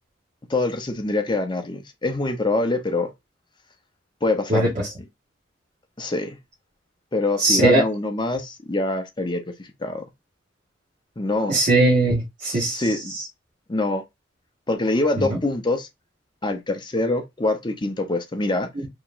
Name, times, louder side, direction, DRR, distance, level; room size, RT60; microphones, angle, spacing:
voice 1, 0.5-3.1 4.2-4.7 6.0-6.4 7.1-10.0 11.2-11.6 12.5-13.1 13.7-14.0 14.7-15.9 16.4-18.7, left 2 dB, 25° left, 0.7 m, -25 dB
voice 2, 7.4-7.8 11.5-12.8 15.2-15.3, right 2 dB, 40° right, 1.1 m, -19 dB
5.0 x 2.9 x 2.5 m
head